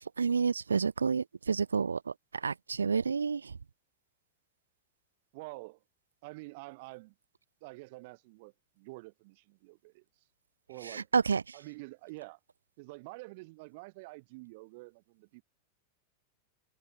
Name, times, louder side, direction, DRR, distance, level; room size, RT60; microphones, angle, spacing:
voice 1, 0.2-2.0 2.4-3.4 11.1-11.4, right 5 dB, 75° right, 0.4 m, -28 dB
voice 2, 5.3-5.8 6.2-7.1 7.6-10.0 10.7-11.1 11.5-12.4 12.8-15.4, right 25 dB, 50° right, 3.8 m, -47 dB
figure-of-eight pair, 90°, 0 cm